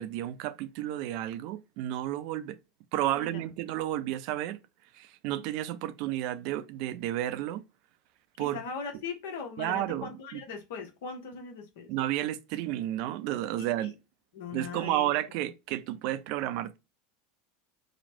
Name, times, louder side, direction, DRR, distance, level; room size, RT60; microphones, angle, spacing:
voice 1, 0.0-2.6 2.9-4.6 4.9-7.6 8.4-8.6 9.6-10.4 11.9-13.9 14.5-16.8, right 13 dB, 55° right, 0.3 m, -32 dB
voice 2, 3.1-3.4 8.5-11.9 13.6-13.9 14.3-15.1, left 5 dB, 65° left, 0.8 m, -40 dB
3.0 x 2.1 x 2.7 m
figure-of-eight pair, 80°, 0 cm